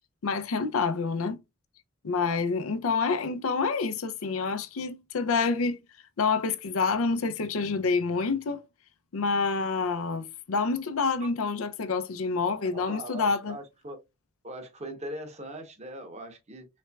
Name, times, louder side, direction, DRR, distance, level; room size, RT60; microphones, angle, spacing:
voice 1, 0.2-1.4 2.0-5.8 6.2-8.6 9.1-13.6, left 4 dB, 80° left, 0.5 m, -27 dB
voice 2, 12.6-14.0 14.4-16.7, right 1 dB, 35° right, 0.9 m, -40 dB
4.2 x 3.2 x 2.3 m
head